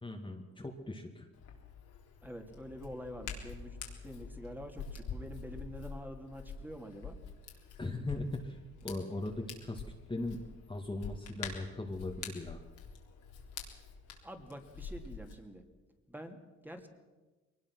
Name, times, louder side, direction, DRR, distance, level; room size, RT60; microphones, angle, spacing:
voice 1, 0.0-1.3 7.8-8.6 8.8-9.8 10.1-10.4 10.7-12.6, left 2 dB, 15° left, 1 dB, 2.0 m, -39 dB
Hands, 1.3-15.3, left 5 dB, 80° left, 3.7 m, -46 dB
voice 2, 2.2-3.8 4.0-7.2 14.2-15.6 16.1-16.4 16.6-16.9, equal, 5° right, 4 dB, 2.7 m, -46 dB
22.0 x 19.5 x 6.2 m, 1.2 s
cardioid pair, 90°, 30 cm